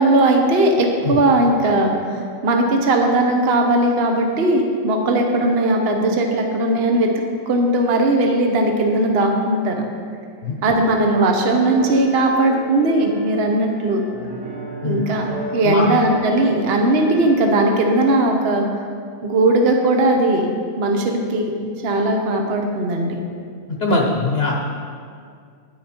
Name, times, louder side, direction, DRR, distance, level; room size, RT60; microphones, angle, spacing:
voice 1, 0.0-7.1 7.5-9.8 10.6-14.0 14.8-18.9 19.2-20.5 20.8-21.5 21.8-23.2, right 2 dB, 50° right, 2 dB, 1.1 m, -18 dB
sound 1, 11.5-18.2, right 1 dB, 85° right, 1.9 m, -35 dB
voice 2, 23.7-24.6, left 3 dB, 50° left, 0 dB, 1.0 m, -21 dB
9.9 x 9.6 x 4.4 m, 2.2 s
omnidirectional pair, 1.4 m